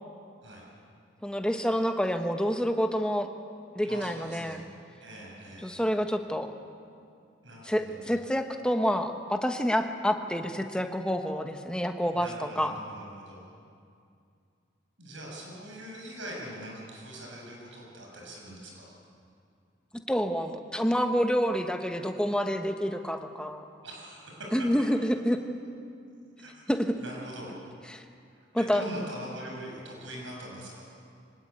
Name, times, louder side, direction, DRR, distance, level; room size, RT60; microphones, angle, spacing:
voice 1, 1.2-3.3 3.7-4.6 5.6-6.5 7.6-12.3 12.6-12.7 20.1-23.6 24.5-25.4 26.7-27.0 27.9-28.0 28.5-28.8, equal, 5° left, 5 dB, 1.2 m, -28 dB
voice 2, 3.8-4.7 5.0-5.7 7.4-8.0 12.0-13.5 15.0-18.9 23.8-24.7 26.4-27.5 28.3-30.9, right 1 dB, 75° right, -2 dB, 7.2 m, -42 dB
24.5 x 19.5 x 8.9 m, 2.4 s
head